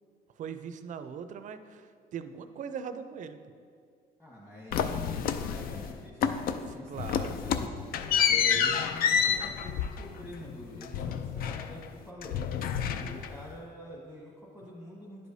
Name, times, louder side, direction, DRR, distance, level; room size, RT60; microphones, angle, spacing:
voice 1, 0.3-3.4 6.9-7.7, right 7 dB, 50° right, 10 dB, 0.4 m, -40 dB
voice 2, 4.2-7.7 8.2-12.4 12.8-15.3, left 1 dB, 10° left, -6 dB, 1.2 m, -46 dB
elevator button door, 4.7-5.9 6.2-6.7 7.0-11.9 12.2-13.5, left 8 dB, 60° left, 0.4 m, -29 dB
10.5 x 4.8 x 2.7 m, 2.2 s
cardioid pair, 110°, 17 cm